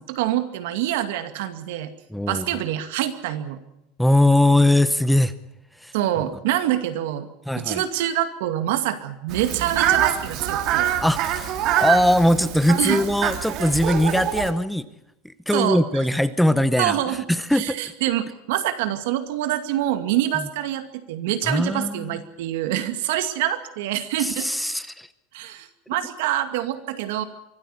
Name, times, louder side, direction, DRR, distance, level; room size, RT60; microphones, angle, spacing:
voice 1, 0.0-1.9 2.3-3.6 5.9-10.9 12.8-13.0 15.5-15.8 16.8-17.2 17.5-24.5 25.3-27.2, right 12 dB, 80° right, 9 dB, 2.2 m, -26 dB
voice 2, 2.1-2.5 4.0-5.3 5.8-5.9 7.5-7.8 11.0-11.5 11.8-14.9 15.2-17.8 20.3-20.5 21.4-22.2 24.2-25.1, left 1 dB, ahead, 13 dB, 0.8 m, -21 dB
Fowl, 9.3-14.5, right 10 dB, 45° right, 2.2 m, -25 dB
24.5 x 13.0 x 9.8 m, 0.85 s
supercardioid pair, 155°, 0 cm